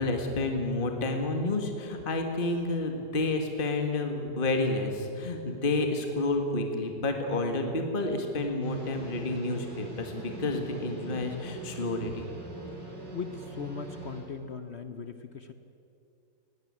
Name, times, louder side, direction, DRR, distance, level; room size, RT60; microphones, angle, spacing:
voice 1, 0.0-12.3, left 2 dB, 30° left, 4 dB, 1.8 m, -30 dB
sound 1, 8.6-14.2, right 3 dB, 90° right, 5.3 m, -42 dB
voice 2, 13.1-15.5, left 5 dB, 50° left, 9 dB, 0.8 m, -39 dB
20.0 x 16.5 x 9.6 m, 2.7 s
omnidirectional pair, 1.8 m